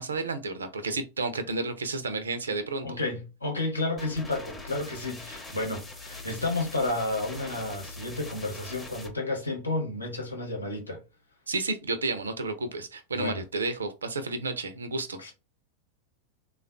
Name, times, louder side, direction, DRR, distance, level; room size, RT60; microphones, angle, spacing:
voice 1, 0.0-3.0 11.5-15.2, right 3 dB, 70° right, 0.5 m, -31 dB
voice 2, 2.8-11.0 13.1-13.4 15.2-15.3, left 2 dB, 80° left, 0.9 m, -31 dB
sound 1, 4.0-9.1, left 2 dB, 10° left, 0.7 m, -42 dB
3.4 x 2.3 x 2.3 m
figure-of-eight pair, 90°, 0 cm